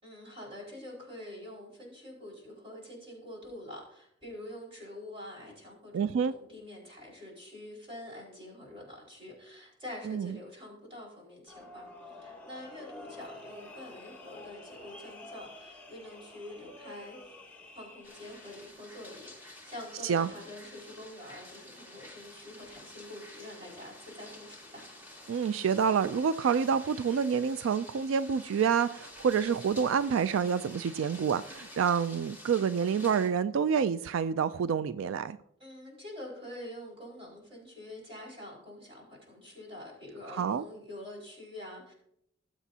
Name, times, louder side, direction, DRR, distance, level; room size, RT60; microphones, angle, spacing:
voice 1, 0.0-17.3 17.7-24.8 35.6-41.9, left 1 dB, 30° right, -3 dB, 5.0 m, -46 dB
voice 2, 5.9-6.3 10.1-10.3 20.0-20.3 25.3-35.4 40.3-40.6, right 7 dB, 75° right, 14 dB, 0.3 m, -28 dB
sound 1, 11.5-18.7, left 2 dB, 10° left, 1.7 m, -49 dB
sound 2, 18.0-33.3, left 1 dB, 10° right, 2.1 m, -50 dB
18.5 x 8.0 x 2.8 m, 0.74 s
head